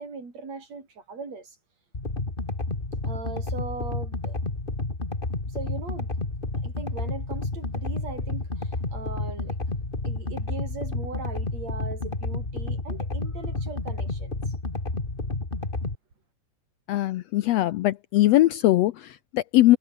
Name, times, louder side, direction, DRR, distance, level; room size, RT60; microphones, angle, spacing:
voice 1, 0.0-1.6 3.1-4.4 5.5-6.1 6.6-9.6 10.0-14.4 15.2-15.3, right 4 dB, 60° right, 6.3 m, -39 dB
sound 1, 1.9-16.0, left 2 dB, 20° left, 2.7 m, -30 dB
voice 2, 16.9-19.8, left 15 dB, 75° left, 1.6 m, -21 dB
omnidirectional pair, 3.5 m